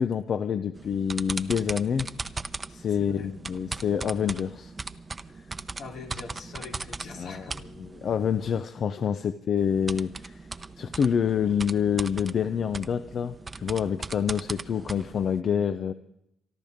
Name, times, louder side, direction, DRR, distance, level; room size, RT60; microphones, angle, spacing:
voice 1, 0.0-2.1 2.7-4.7 7.2-7.5 7.8-10.4 10.8-15.9, left 7 dB, 55° left, 11 dB, 0.6 m, -27 dB
sound 1, 0.7-8.6 9.6-15.4, right 3 dB, 25° right, 0.7 m, -39 dB
voice 2, 3.0-3.3 5.8-7.6, left 4 dB, 80° left, -1 dB, 3.3 m, -42 dB
27.5 x 12.0 x 3.6 m, 0.78 s
cardioid pair, 90°, 0 cm